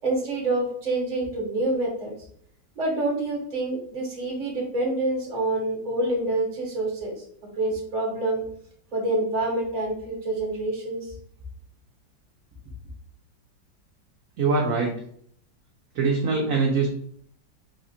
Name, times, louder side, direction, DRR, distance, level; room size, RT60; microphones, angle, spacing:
voice 1, 0.0-2.1 2.8-7.2 7.6-8.5 8.9-11.1, right 2 dB, 30° right, -1 dB, 0.9 m, -27 dB
voice 2, 14.4-14.9 16.0-16.9, right 4 dB, 65° right, 0 dB, 0.8 m, -22 dB
4.2 x 2.4 x 2.7 m, 0.63 s
omnidirectional pair, 1.9 m